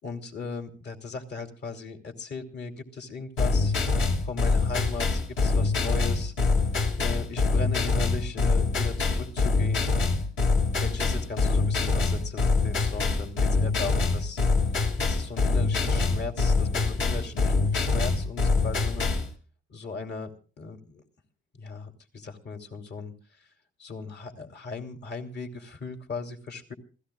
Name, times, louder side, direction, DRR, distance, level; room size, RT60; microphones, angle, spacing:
voice 1, 0.0-3.7 4.2-6.3 7.0-10.0 10.7-14.4 15.0-19.1 19.7-20.3 20.6-21.0 21.6-23.5 23.8-26.7, left 4 dB, 55° left, 5 dB, 3.2 m, -37 dB
sound 1, 3.4-19.3, left 3 dB, 75° left, 5.3 m, -24 dB
28.0 x 17.5 x 2.4 m, 0.39 s
cardioid pair, 90°, 20 cm